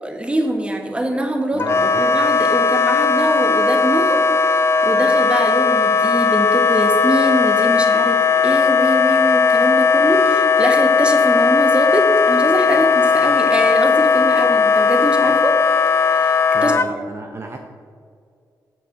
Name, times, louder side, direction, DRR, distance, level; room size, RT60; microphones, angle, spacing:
voice 1, 0.0-4.2 4.5-15.6 16.1-16.7, right 1 dB, 15° right, 3 dB, 1.3 m, -23 dB
voice 2, 1.5-2.0 16.5-17.6, right 3 dB, 35° right, 3 dB, 0.7 m, -32 dB
Wind instrument woodwind instrument, 1.6-16.9, left 5 dB, 35° left, 0.4 m, -16 dB
7.5 x 6.4 x 6.6 m, 2.2 s
cardioid pair, 90°, 8 cm